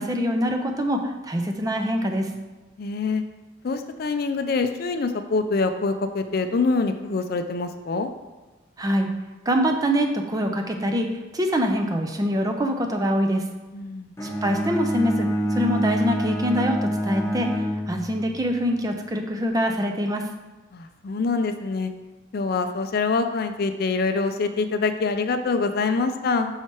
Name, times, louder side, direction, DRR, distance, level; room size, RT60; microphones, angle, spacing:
voice 1, 0.0-2.3 8.8-9.1 9.5-11.1 11.3-13.4 14.4-20.2, equal, 20° right, 3 dB, 0.5 m, -24 dB
voice 2, 2.8-3.2 3.6-8.1 13.7-14.1 20.7-21.9 22.3-26.5, left 4 dB, 50° left, 8 dB, 0.4 m, -25 dB
Bowed string instrument, 14.2-18.4, equal, 15° left, 1.0 m, -26 dB
5.6 x 4.4 x 4.5 m, 1.2 s
head